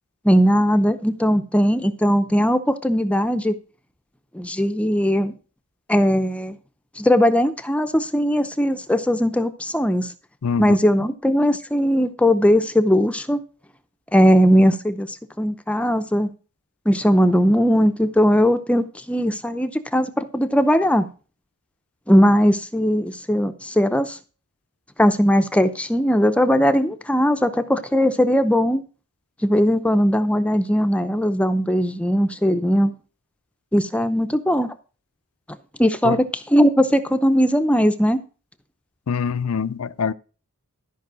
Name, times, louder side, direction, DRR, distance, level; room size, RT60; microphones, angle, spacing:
voice 1, 0.2-3.5 4.3-5.3 5.9-6.6 7.0-10.1 10.6-13.4 14.1-16.3 16.9-21.1 22.1-24.2 25.0-28.8 29.4-32.9 33.7-34.7 35.8-36.2 36.5-38.2, equal, 5° left, 0.6 m, -19 dB
voice 2, 10.4-10.8 36.0-36.2 39.1-40.1, left 6 dB, 70° left, 0.5 m, -24 dB
13.5 x 5.3 x 6.1 m
head